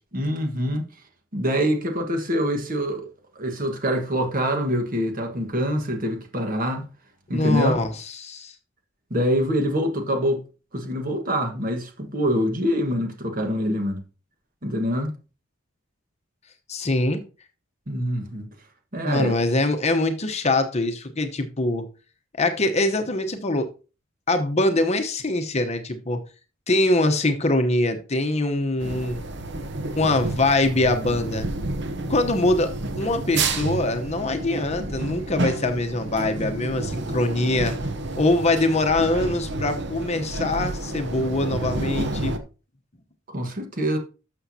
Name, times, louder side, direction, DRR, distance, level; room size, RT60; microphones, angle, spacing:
voice 1, 0.1-0.8 1.3-3.1 3.3-6.9 7.3-7.8 9.1-10.4 10.7-14.0 14.6-15.1 17.9-18.5 18.9-19.3 43.3-44.0, equal, 45° right, 1.5 m, -25 dB
voice 2, 7.3-8.5 16.7-17.2 19.0-21.8 22.4-23.7 24.3-26.2 26.7-29.2 30.0-31.5 32.1-32.7 33.0-37.7 38.2-42.3, left 2 dB, 35° left, 0.9 m, -23 dB
sound 1, 28.8-42.4, right 2 dB, 60° right, 0.9 m, -30 dB
12.0 x 6.8 x 2.8 m
head